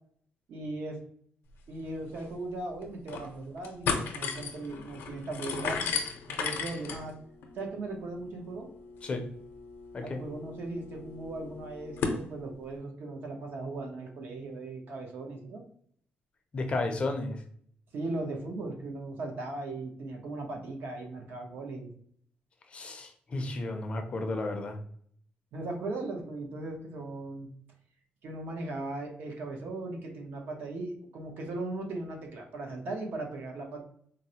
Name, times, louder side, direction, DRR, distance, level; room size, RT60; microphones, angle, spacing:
voice 1, 0.5-1.0 1.7-6.0 6.3-7.2 7.5-8.7 10.0-15.6 17.9-21.9 25.5-27.5 28.2-33.8, right 2 dB, 65° right, 2 dB, 0.8 m, -38 dB
sound 1, 1.8-1.9 2.2-2.3 2.8-3.3 3.6-12.2, left 5 dB, 80° left, 0.5 m, -36 dB
voice 2, 16.5-17.4 22.7-24.8, left 2 dB, 30° left, 5 dB, 0.5 m, -33 dB
4.0 x 2.1 x 2.7 m, 0.63 s
cardioid pair, 150°, 4 cm